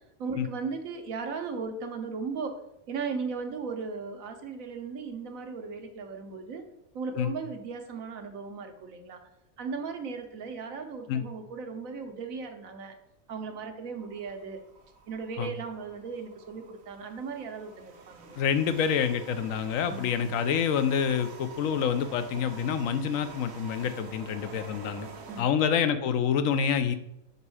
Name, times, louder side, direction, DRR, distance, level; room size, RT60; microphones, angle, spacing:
voice 1, 0.2-2.5 2.9-6.6 6.9-9.2 9.6-12.9 13.3-14.6 15.1-18.3 19.9-20.3 25.3-25.7, right 5 dB, 80° right, 6 dB, 1.3 m, -37 dB
sound 1, 13.9-25.4, right 4 dB, 55° right, 1.0 m, -48 dB
voice 2, 18.4-25.1 25.4-26.9, left 7 dB, 80° left, 10 dB, 1.0 m, -27 dB
5.3 x 5.2 x 4.8 m, 0.84 s
omnidirectional pair, 1.4 m